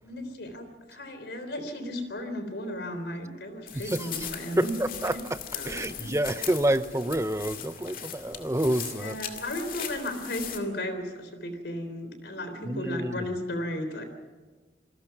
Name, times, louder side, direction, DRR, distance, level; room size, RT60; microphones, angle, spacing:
voice 1, 0.0-4.8 5.1-5.2 5.5-6.1 8.9-14.1, left 1 dB, 70° left, 3.7 m, -35 dB
sound 1, 3.7-10.6, left 8 dB, 50° left, 2.2 m, -39 dB
voice 2, 4.6-5.1 5.7-9.2 12.7-13.2, right 1 dB, 15° right, 0.7 m, -28 dB
27.5 x 20.5 x 6.0 m
head